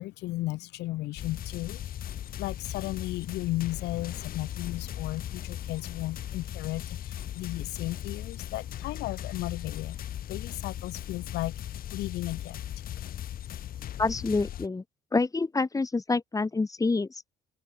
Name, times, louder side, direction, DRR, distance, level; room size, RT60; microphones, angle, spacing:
voice 1, 0.0-1.9 2.4-10.0 10.3-12.6, left 18 dB, 85° left, 4.8 m, -35 dB
sound 1, 1.2-14.7, left 11 dB, 60° left, 4.9 m, -38 dB
voice 2, 14.0-14.8 15.1-17.2, left 3 dB, 20° left, 7.6 m, -27 dB
open air
cardioid pair, 110°, 17 cm